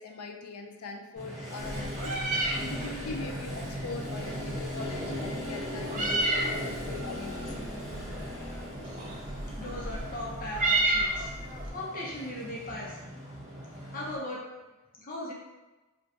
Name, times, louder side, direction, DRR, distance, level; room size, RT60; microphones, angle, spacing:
voice 1, 0.0-7.7, left 3 dB, 80° left, 4 dB, 0.4 m, -41 dB
Motorcycle, 1.2-14.2, equal, 15° right, 0.9 m, -38 dB
Meow, 1.6-11.7, right 2 dB, 35° right, 0.4 m, -33 dB
voice 2, 9.6-11.3 11.7-13.0 13.9-14.4 15.0-15.3, left 1 dB, 40° left, -4 dB, 0.7 m, -37 dB
2.5 x 2.2 x 4.0 m, 1.1 s
head